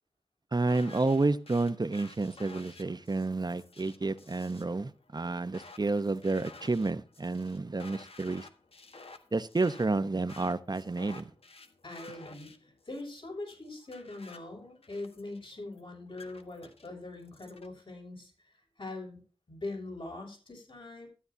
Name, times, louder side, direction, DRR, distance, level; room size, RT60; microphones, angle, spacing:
voice 1, 0.5-8.5 9.3-11.3, right 3 dB, 45° right, 0.9 m, -30 dB
sound 1, 0.7-17.7, left 3 dB, 80° left, 1.4 m, -54 dB
voice 2, 11.8-19.2 19.5-21.1, left 2 dB, 65° left, 6.4 m, -42 dB
13.0 x 9.7 x 2.7 m
wide cardioid pair, 45°, 10 cm